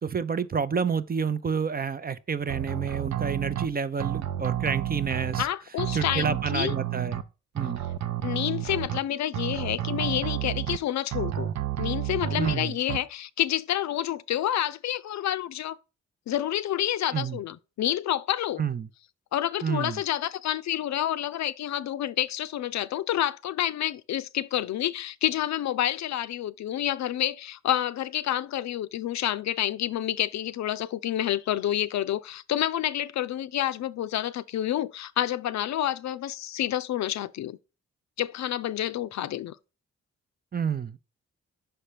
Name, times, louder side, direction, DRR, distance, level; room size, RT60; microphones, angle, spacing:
voice 1, 0.0-5.5 5.9-7.2 7.5-7.8 12.4-12.8 17.1-17.4 18.6-18.9 19.6-20.0 40.5-41.0, right 6 dB, 30° right, 0.6 m, -29 dB
sound 1, 2.5-3.7 4.0-5.4 5.8-7.2 7.6-9.0 9.3-10.8 11.1-12.6 12.9-13.0, right 12 dB, 65° right, 0.7 m, -30 dB
voice 2, 5.4-6.8 8.2-11.5 11.8-15.8 16.3-18.6 19.3-37.6 38.2-39.6, left 12 dB, 65° left, 0.5 m, -29 dB
5.7 x 4.3 x 5.0 m
supercardioid pair, 55°, 29 cm